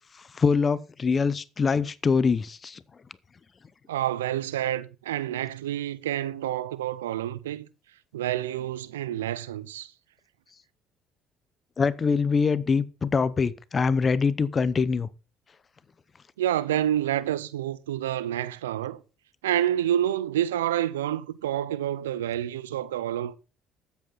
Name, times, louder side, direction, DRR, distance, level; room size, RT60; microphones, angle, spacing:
voice 1, 0.3-2.8 11.8-15.1, left 5 dB, 35° left, 0.8 m, -24 dB
voice 2, 3.9-7.7 8.1-9.9 16.4-19.0 19.4-23.3, right 11 dB, 85° right, 0.5 m, -28 dB
13.0 x 8.2 x 4.0 m
hypercardioid pair, 55°, 0 cm